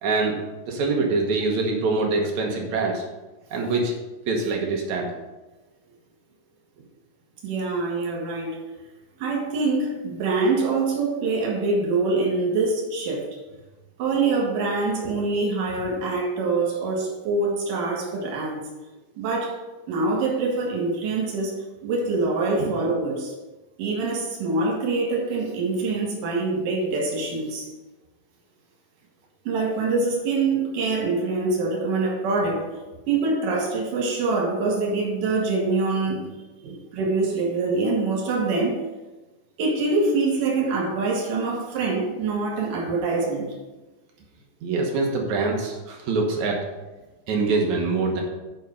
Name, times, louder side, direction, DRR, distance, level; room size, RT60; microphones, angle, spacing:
voice 1, 0.0-0.4 0.7-3.0 3.5-3.9 4.3-5.1 22.6-22.7 36.6-36.8 44.6-46.6 47.3-48.2, right 3 dB, 65° right, 0 dB, 2.4 m, -24 dB
voice 2, 7.4-8.6 9.2-13.2 14.0-18.6 19.2-19.6 19.9-21.5 21.8-23.3 23.8-27.7 29.4-32.6 33.1-36.2 36.9-38.8 39.6-43.5, right 3 dB, 85° right, -1 dB, 3.3 m, -24 dB
9.3 x 5.4 x 5.3 m, 1.1 s
omnidirectional pair, 3.7 m